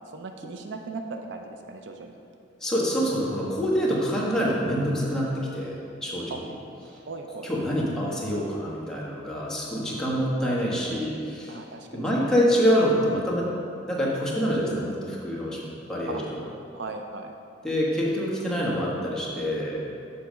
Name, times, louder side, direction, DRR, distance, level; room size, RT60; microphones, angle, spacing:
voice 1, 0.1-2.1 6.3-6.4 6.8-7.5 11.5-12.3 16.1-16.2 16.7-17.3, right 3 dB, 65° right, 4 dB, 0.5 m, -38 dB
voice 2, 2.6-6.3 7.4-11.6 11.9-13.5 13.9-15.6 15.9-16.2 17.6-19.8, equal, 5° left, -6 dB, 1.2 m, -26 dB
6.9 x 3.9 x 6.2 m, 2.5 s
head